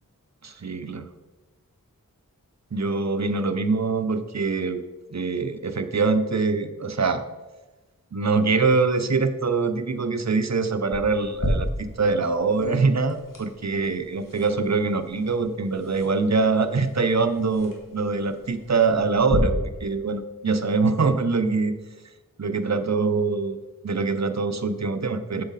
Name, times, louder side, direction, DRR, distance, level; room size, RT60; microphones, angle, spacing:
voice 1, 0.4-1.0 2.7-4.8 5.1-7.2 8.1-21.7 22.4-23.6 23.8-25.4, right 4 dB, 50° right, 9 dB, 0.6 m, -24 dB
sound 1, 10.9-19.4, left 1 dB, 65° left, 1.9 m, -35 dB
7.7 x 7.1 x 4.1 m, 1.2 s
wide cardioid pair, 45°, 35 cm